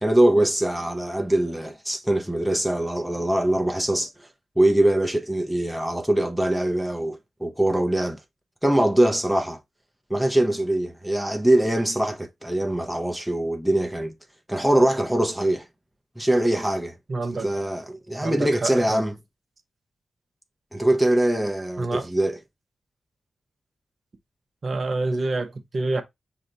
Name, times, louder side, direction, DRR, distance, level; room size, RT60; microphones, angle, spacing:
voice 1, 0.0-4.3 4.6-8.2 8.6-9.6 10.1-14.1 14.5-15.7 16.2-17.0 17.4-19.1 20.7-22.4, right 1 dB, ahead, 0.6 m, -22 dB
voice 2, 17.1-17.5 18.2-19.0 21.8-22.1 24.6-26.0, right 2 dB, 45° right, 0.7 m, -27 dB
5.6 x 2.2 x 3.7 m
wide cardioid pair, 155°, 0 cm